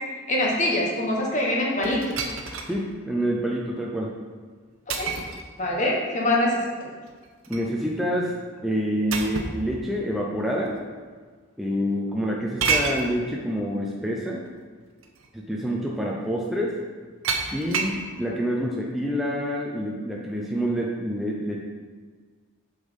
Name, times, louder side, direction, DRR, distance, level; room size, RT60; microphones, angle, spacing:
voice 1, 0.3-2.0 4.9-5.1 5.6-6.6, left 1 dB, 35° left, -2 dB, 1.4 m, -23 dB
sound 1, 1.8-2.8 3.3-3.4 4.9-5.4 7.1-7.7 9.1-9.6 10.6-10.7 12.6-13.1 14.5-14.6 15.0-15.3 17.2-18.0, right 4 dB, 70° right, 0.9 m, -28 dB
voice 2, 2.7-4.2 7.5-8.3 8.6-10.8 11.6-14.5 15.3-16.7 17.5-21.6, equal, ahead, -3 dB, 0.6 m, -27 dB
7.6 x 5.2 x 5.4 m, 1.5 s
head